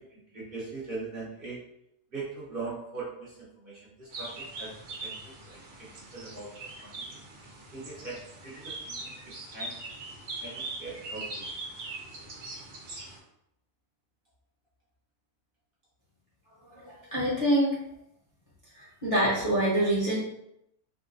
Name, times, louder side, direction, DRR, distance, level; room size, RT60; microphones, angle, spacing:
voice 1, 0.0-1.6 2.1-4.7 5.0-5.9 6.1-6.5 6.8-7.2 7.7-9.1 9.5-9.7 10.4-11.5, right 3 dB, 45° right, -8 dB, 0.8 m, -41 dB
sound 1, 4.1-13.2, right 2 dB, 70° right, 1.1 m, -41 dB
voice 2, 16.7-17.8 18.7-20.2, right 1 dB, 30° left, -9 dB, 0.7 m, -26 dB
3.7 x 2.1 x 2.5 m, 0.79 s
omnidirectional pair, 1.5 m